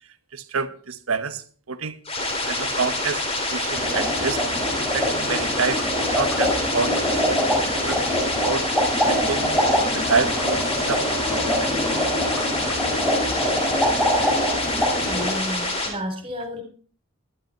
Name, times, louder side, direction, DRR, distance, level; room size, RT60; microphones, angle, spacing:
voice 1, 0.3-2.0 2.5-3.2 3.5-4.4 4.8-8.2 8.4-8.6 9.1-9.6 9.9-11.8, right 4 dB, 80° right, 11 dB, 1.2 m, -28 dB
sound 1, 2.0-15.9, left 2 dB, 30° left, 4.1 m, -27 dB
sound 2, 3.7-15.3, equal, ahead, 3.8 m, -24 dB
voice 2, 15.0-16.6, equal, 25° right, 4 dB, 4.4 m, -31 dB
13.0 x 11.5 x 4.5 m, 0.42 s
head